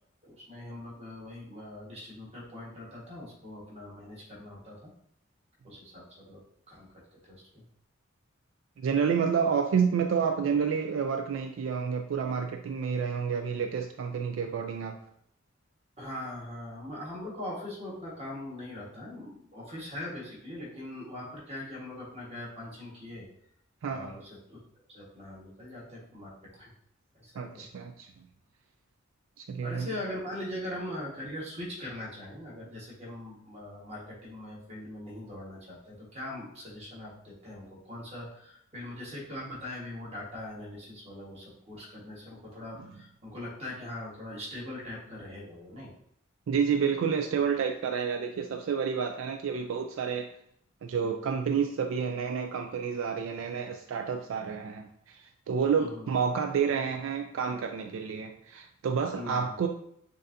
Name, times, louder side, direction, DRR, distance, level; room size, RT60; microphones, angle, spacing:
voice 1, 0.2-4.9 5.6-6.4 6.7-7.4 16.0-23.3 23.9-24.6 24.9-26.7 27.1-27.7 29.6-45.9 55.7-56.1 59.1-59.4, left 1 dB, 30° right, -5 dB, 1.4 m, -41 dB
voice 2, 8.8-15.0 23.8-24.1 27.4-28.1 29.4-29.9 46.5-50.3 50.8-59.7, right 6 dB, 75° right, 5 dB, 0.3 m, -29 dB
6.3 x 2.6 x 2.6 m, 0.69 s
head